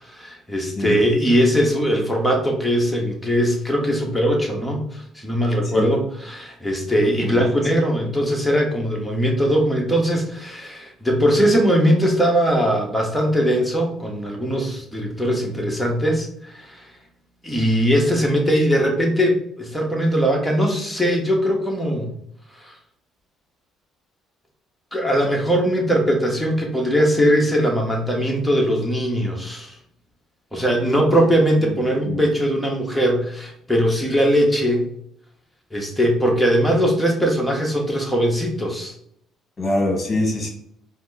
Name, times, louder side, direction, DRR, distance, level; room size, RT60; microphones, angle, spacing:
voice 1, 0.0-16.8 17.4-22.1 22.6-22.7 24.9-29.8 30.5-34.9 35.7-38.9, equal, 5° left, 0 dB, 1.3 m, -20 dB
voice 2, 31.7-32.2 39.6-40.5, left 1 dB, 35° left, 1 dB, 1.3 m, -24 dB
4.3 x 2.1 x 4.1 m, 0.69 s
supercardioid pair, 85°, 0 cm